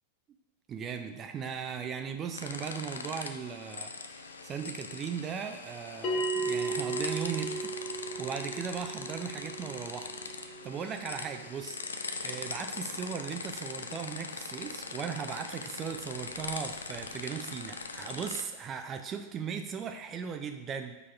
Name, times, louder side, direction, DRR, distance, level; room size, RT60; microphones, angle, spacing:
voice 1, 0.7-11.8 12.2-21.0, right 7 dB, 25° right, 6 dB, 0.4 m, -38 dB
sound 1, 2.3-18.4, left 4 dB, 75° left, 0.4 m, -41 dB
Bell, 6.0-11.1, right 3 dB, 35° left, 0.9 m, -35 dB
8.6 x 5.4 x 2.4 m, 1.1 s
figure-of-eight pair, 90°, 0 cm